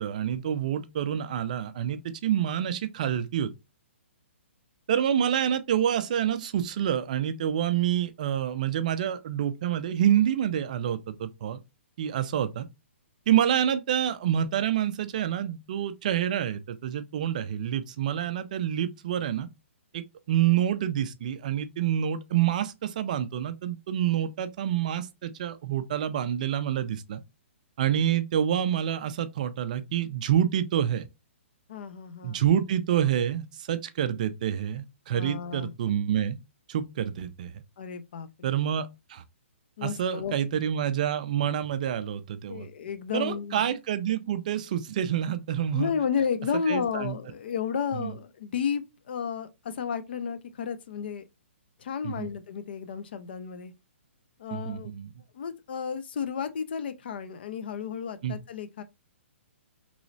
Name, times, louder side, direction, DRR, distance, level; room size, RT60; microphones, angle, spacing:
voice 1, 0.0-3.5 4.9-11.6 12.0-12.7 13.3-19.5 19.9-27.2 27.8-31.1 32.2-36.4 36.7-37.6 38.4-39.2 39.8-42.7 43.1-45.9 46.7-47.2 47.9-48.2 52.0-52.3 54.5-55.1 58.2-58.4, right 10 dB, 35° right, 0.3 m, -27 dB
voice 2, 31.7-32.4 35.1-35.7 37.8-38.5 39.8-40.3 42.5-43.6 45.7-51.2 51.8-53.7 54.4-54.9 55.3-58.8, left 7 dB, 50° left, 0.5 m, -32 dB
3.0 x 3.0 x 2.6 m
hypercardioid pair, 170°, 7 cm